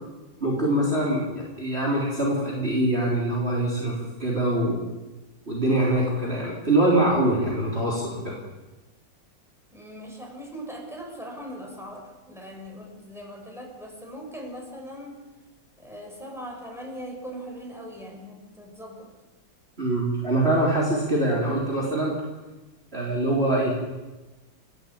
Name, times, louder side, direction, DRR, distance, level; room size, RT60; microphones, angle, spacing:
voice 1, 0.4-4.8 5.5-8.3 19.8-22.2 22.9-23.9, right 1 dB, 30° right, -5 dB, 4.1 m, -24 dB
voice 2, 0.9-1.3 9.7-12.0 12.3-15.1 15.8-19.1, equal, ahead, -1 dB, 6.3 m, -40 dB
30.0 x 12.5 x 8.7 m, 1.1 s
omnidirectional pair, 2.0 m